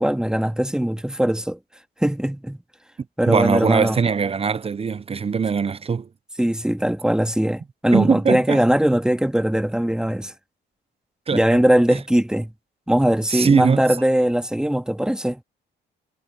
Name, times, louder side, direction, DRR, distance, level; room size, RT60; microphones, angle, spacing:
voice 1, 0.0-1.6 2.0-2.6 3.2-4.0 6.4-10.3 11.3-12.5 12.9-15.4, equal, 5° right, 2.0 m, -20 dB
voice 2, 3.3-6.1 7.9-8.6 11.3-11.6 11.9-12.0 13.3-13.8, right 5 dB, 30° right, 0.7 m, -21 dB
cardioid pair, 90°, 20 cm